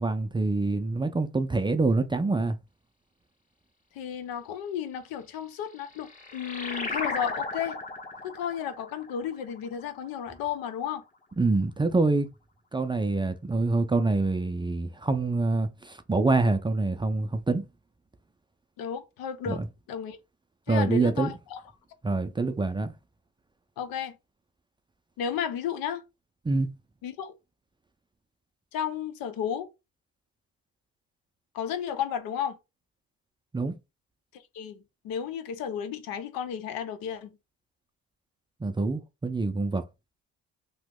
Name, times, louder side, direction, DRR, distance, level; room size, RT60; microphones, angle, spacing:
voice 1, 0.0-2.6 11.4-12.3 12.7-17.6 19.5-19.7 20.7-21.3 22.0-22.9 26.5-26.7 33.5-33.7 38.6-39.8, right 3 dB, 15° right, 0.4 m, -26 dB
voice 2, 3.9-7.8 8.2-11.0 18.8-19.6 19.9-20.2 20.7-21.6 23.8-24.2 25.2-26.0 27.0-27.3 28.7-29.7 31.5-32.6 34.3-34.8 35.0-37.4, left 8 dB, 75° left, 0.7 m, -33 dB
sound 1, 5.5-10.6, left 3 dB, 25° left, 0.8 m, -36 dB
2.9 x 2.0 x 3.5 m
supercardioid pair, 75°, 35 cm